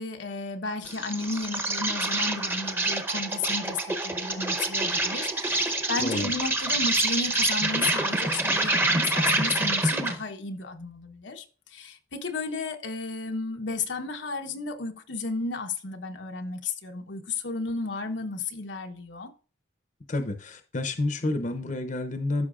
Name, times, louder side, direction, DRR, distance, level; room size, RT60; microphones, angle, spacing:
voice 1, 0.0-11.4 11.7-19.3, left 3 dB, 85° left, 1.0 m, -33 dB
Insect, 0.8-10.2, right 2 dB, 10° right, 0.8 m, -27 dB
voice 2, 6.0-6.3 20.1-22.5, left 2 dB, 45° left, 0.7 m, -29 dB
13.5 x 5.9 x 2.4 m
head